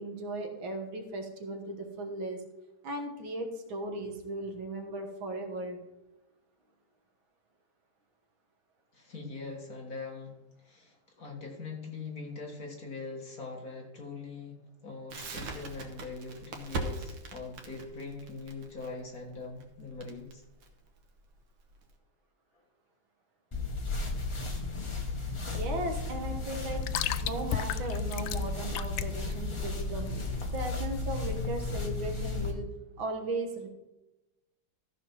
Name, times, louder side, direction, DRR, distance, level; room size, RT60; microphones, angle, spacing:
voice 1, 0.0-2.4 2.8-5.8 25.5-26.8 27.2-30.2 30.5-32.7 33.0-33.7, right 2 dB, 65° right, 3 dB, 2.0 m, -37 dB
voice 2, 8.9-14.6 14.8-20.4, left 3 dB, 45° left, 0 dB, 1.9 m, -42 dB
Crackle, 15.1-21.9, right 3 dB, 85° right, 2.2 m, -41 dB
sound 1, 23.5-32.5, left 3 dB, 20° left, 0.7 m, -34 dB
sound 2, 24.3-31.0, left 13 dB, 90° left, 1.5 m, -38 dB
13.5 x 5.1 x 5.6 m, 0.99 s
omnidirectional pair, 2.4 m